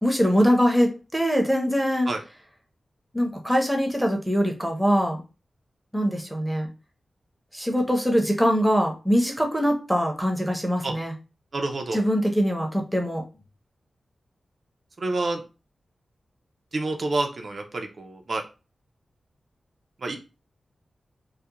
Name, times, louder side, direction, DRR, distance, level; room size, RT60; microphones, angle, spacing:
voice 1, 0.0-2.1 3.1-5.2 5.9-6.7 7.5-11.1 11.9-13.2, equal, ahead, 1 dB, 0.6 m, -23 dB
voice 2, 11.5-12.0 15.0-15.4 16.7-18.4 20.0-20.2, right 2 dB, 50° right, 3 dB, 0.3 m, -28 dB
2.3 x 2.0 x 2.8 m, 0.30 s
wide cardioid pair, 125°, 0 cm